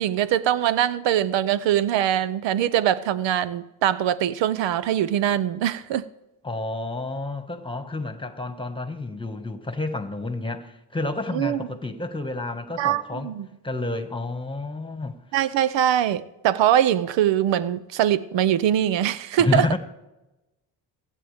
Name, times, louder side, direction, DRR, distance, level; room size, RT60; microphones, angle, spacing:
voice 1, 0.0-6.0 11.3-11.6 12.8-13.5 15.3-19.7, right 11 dB, 80° right, 0.7 m, -22 dB
voice 2, 6.4-13.3 13.6-15.2 19.4-19.8, left 3 dB, 10° left, 1.7 m, -29 dB
26.5 x 9.1 x 3.6 m
supercardioid pair, 60°, 43 cm